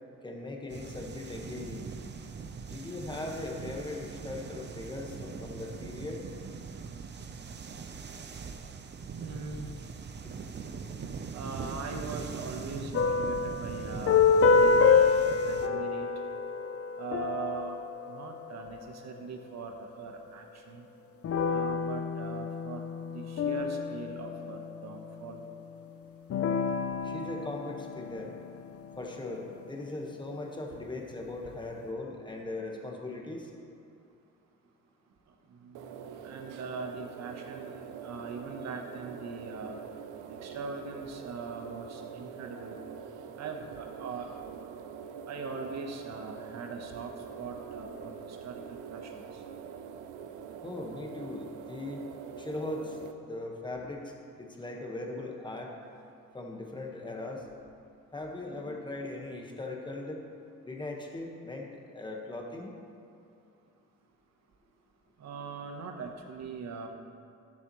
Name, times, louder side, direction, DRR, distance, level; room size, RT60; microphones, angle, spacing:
voice 1, 0.2-1.9 2.7-6.2 10.2-10.3 27.0-28.3 29.0-33.5 50.6-52.1 52.4-55.8 56.3-57.5 58.1-60.2 60.6-62.7, left 2 dB, 15° left, 1 dB, 1.3 m, -39 dB
sound 1, 0.7-15.7, right 5 dB, 35° right, 0.6 m, -41 dB
voice 2, 9.1-9.7 11.3-14.8 15.4-16.1 17.0-17.8 18.1-20.9 21.5-22.8 23.1-25.4 30.7-30.8 35.6-35.8 36.2-39.8 40.4-42.8 43.4-44.3 45.3-49.2 58.5-58.8 65.2-66.9, right 4 dB, 60° right, 3 dB, 1.0 m, -41 dB
sound 2, 12.9-18.9 21.2-25.1 26.3-29.0, left 5 dB, 50° left, 0.6 m, -27 dB
sound 3, 35.7-53.1, right 7 dB, 85° right, 0.6 m, -44 dB
12.5 x 7.2 x 3.1 m, 2.5 s
cardioid pair, 90°, 30 cm